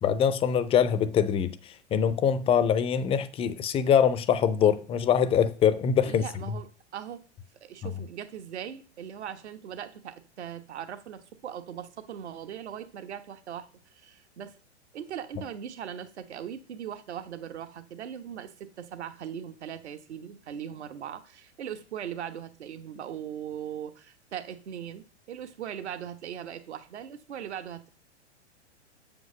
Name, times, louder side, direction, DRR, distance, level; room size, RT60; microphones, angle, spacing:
voice 1, 0.0-6.5 7.8-7.9 15.4-15.5, left 8 dB, 15° left, 0.5 m, -24 dB
voice 2, 6.1-7.2 7.6-13.7 13.9-14.6 14.9-27.9, right 9 dB, 65° right, 1.3 m, -39 dB
7.5 x 5.2 x 6.1 m
figure-of-eight pair, 105°, 36 cm